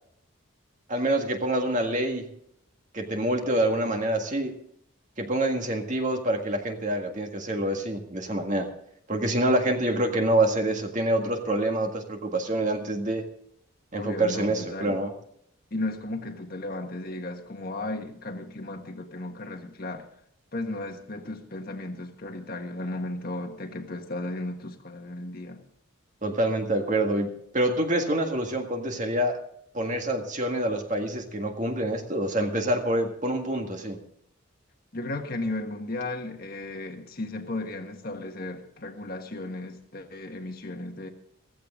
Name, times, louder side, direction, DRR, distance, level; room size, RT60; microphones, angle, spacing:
voice 1, 0.9-2.3 2.9-4.6 5.2-8.7 9.1-13.3 13.9-15.1 26.2-29.4 29.7-34.0, right 1 dB, 35° right, 1.8 m, -26 dB
voice 2, 13.9-15.0 15.7-20.0 20.5-25.6 34.9-41.1, left 2 dB, 45° left, 1.5 m, -35 dB
15.5 x 15.0 x 3.7 m
head